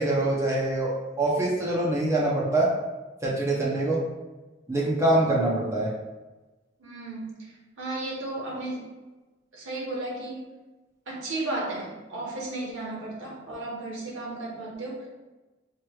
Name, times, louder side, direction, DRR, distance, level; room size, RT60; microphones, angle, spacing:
voice 1, 0.0-2.7 3.2-4.0 4.7-5.9, right 2 dB, 15° right, -5 dB, 0.6 m, -24 dB
voice 2, 6.8-7.4 7.8-8.8 9.5-10.4 11.1-15.1, right 2 dB, 75° right, -3 dB, 1.1 m, -34 dB
4.7 x 3.0 x 2.3 m, 1.2 s
head